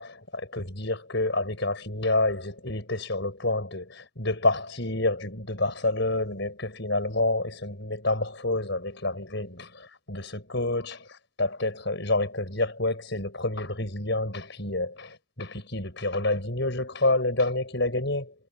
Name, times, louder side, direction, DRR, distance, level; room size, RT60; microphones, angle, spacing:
voice 1, 0.0-18.3, left 2 dB, 55° left, 6.9 m, -28 dB
head